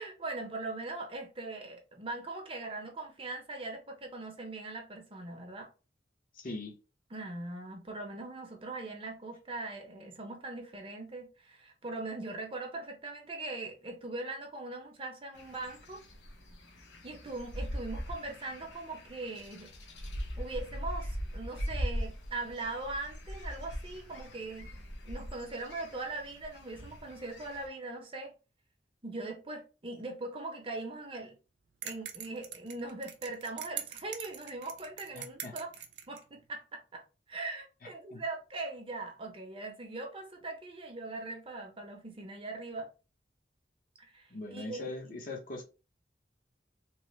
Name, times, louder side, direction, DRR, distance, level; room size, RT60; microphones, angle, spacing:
voice 1, 0.0-5.7 7.1-16.0 17.0-19.7 20.4-24.7 25.1-28.3 29.0-31.4 31.8-35.7 36.1-37.0 37.3-42.9 44.0-45.2, right 2 dB, 30° right, 0.6 m, -41 dB
voice 2, 6.3-6.7 35.1-35.5 37.8-38.2 44.3-45.6, left 2 dB, 50° left, 0.8 m, -41 dB
sound 1, 15.3-27.7, equal, 90° left, 0.7 m, -41 dB
sound 2, 31.8-36.2, right 9 dB, 80° right, 0.5 m, -43 dB
3.0 x 2.1 x 3.0 m
head